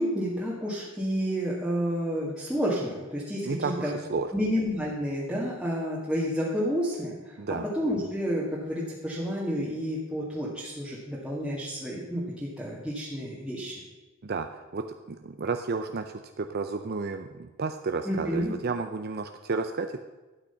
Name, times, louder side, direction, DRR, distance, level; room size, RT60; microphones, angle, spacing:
voice 1, 0.0-3.9 4.3-7.4 7.7-13.8 18.1-18.5, equal, 5° right, -8 dB, 1.9 m, -30 dB
voice 2, 3.4-4.3 7.4-7.6 14.2-20.0, right 4 dB, 50° right, 7 dB, 0.5 m, -32 dB
12.0 x 9.0 x 5.7 m, 1.2 s
head